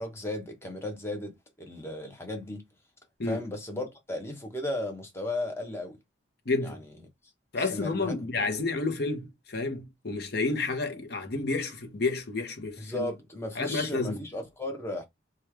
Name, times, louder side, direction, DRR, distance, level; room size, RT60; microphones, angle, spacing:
voice 1, 0.0-2.6 3.2-6.0 6.6-6.8 7.6-8.2 12.8-15.0, left 1 dB, 15° left, 0.8 m, -35 dB
voice 2, 6.5-6.8 7.5-13.1 13.6-14.2, left 3 dB, 55° left, 0.8 m, -30 dB
3.1 x 2.3 x 3.3 m
head